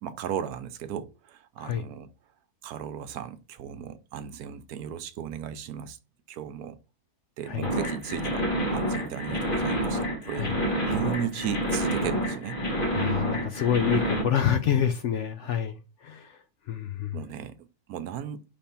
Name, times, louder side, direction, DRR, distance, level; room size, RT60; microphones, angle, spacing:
voice 1, 0.0-2.1 2.6-6.0 6.3-6.8 7.4-8.4 8.7-12.6 17.1-18.4, right 9 dB, 75° right, 1.1 m, -36 dB
sound 1, 7.6-14.2, equal, 35° left, 1.6 m, -28 dB
voice 2, 12.9-17.2, left 9 dB, 65° left, 0.7 m, -28 dB
5.3 x 3.4 x 5.6 m
omnidirectional pair, 1.7 m